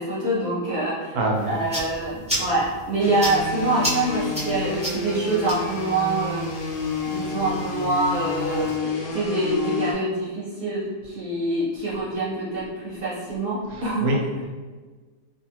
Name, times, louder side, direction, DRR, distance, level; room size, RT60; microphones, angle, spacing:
voice 1, 0.0-1.1 1.4-6.5 7.0-14.1, right 2 dB, 45° right, -8 dB, 1.0 m, -25 dB
voice 2, 1.1-1.6 2.1-2.2 13.7-14.5, right 1 dB, 90° right, 0 dB, 1.1 m, -26 dB
sound 1, 1.3-8.8, equal, 5° right, 0.6 m, -34 dB
sound 2, 3.0-9.9, left 3 dB, 65° left, 0.5 m, -30 dB
2.7 x 2.5 x 2.8 m, 1.4 s
omnidirectional pair, 1.5 m